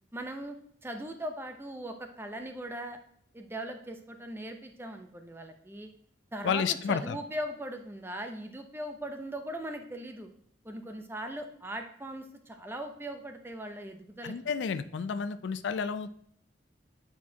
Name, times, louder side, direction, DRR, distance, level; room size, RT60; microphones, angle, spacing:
voice 1, 0.1-0.6 0.8-3.0 3.3-5.9 6.3-10.3 10.6-14.4, right 1 dB, 10° right, 5 dB, 0.6 m, -39 dB
voice 2, 6.4-7.2 14.2-16.1, left 6 dB, 75° left, 12 dB, 0.4 m, -31 dB
8.3 x 4.4 x 2.7 m, 0.64 s
head